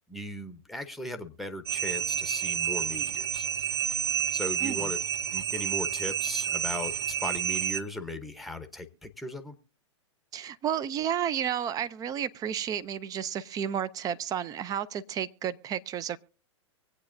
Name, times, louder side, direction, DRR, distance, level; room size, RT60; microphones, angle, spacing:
voice 1, 0.1-3.9 4.3-5.0 5.3-9.6, left 1 dB, ahead, 0.9 m, -38 dB
sound 1, 1.7-7.8, right 8 dB, 60° right, 1.0 m, -30 dB
voice 2, 4.6-4.9 10.3-16.2, right 9 dB, 25° right, 0.5 m, -32 dB
24.5 x 8.4 x 2.6 m
hypercardioid pair, 115°, 16 cm